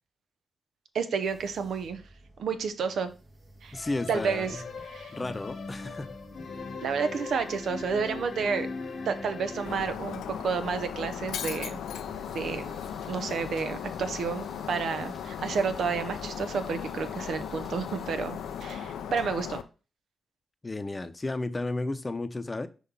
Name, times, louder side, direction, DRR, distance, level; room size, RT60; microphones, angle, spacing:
voice 1, 0.9-2.0 2.4-3.1 3.6-3.8 4.1-5.1 6.8-8.7 9.0-11.8 12.3-12.7 13.1-19.6, right 5 dB, 80° right, 10 dB, 0.7 m, -31 dB
sound 1, 1.2-19.6, right 1 dB, 55° right, 2.0 m, -54 dB
sound 2, 3.7-9.8, left 4 dB, 70° left, 1.0 m, -39 dB
voice 2, 3.7-4.6 5.1-6.1 20.6-22.7, left 2 dB, 30° left, 11 dB, 0.7 m, -33 dB
Shatter, 9.7-19.6, left 8 dB, 90° left, 0.4 m, -37 dB
5.8 x 3.1 x 5.4 m, 0.33 s
supercardioid pair, 50°, 0 cm